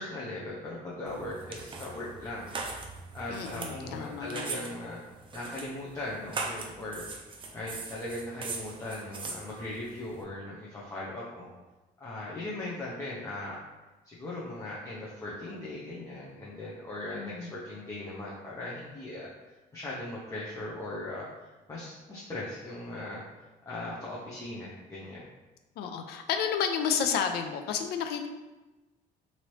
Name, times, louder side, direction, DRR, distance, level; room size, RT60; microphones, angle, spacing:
voice 1, 0.0-2.5 3.1-5.0 5.3-7.0 7.5-11.5 12.0-13.6 14.0-23.2 23.7-25.2, left 1 dB, 20° left, -7 dB, 0.6 m, -39 dB
sound 1, 1.1-10.2, right 3 dB, 30° right, 0.4 m, -41 dB
voice 2, 3.3-4.6 17.1-17.5 25.8-28.3, left 7 dB, 75° left, 6 dB, 0.4 m, -31 dB
2.9 x 2.6 x 3.1 m, 1.1 s
cardioid pair, 110°, 17 cm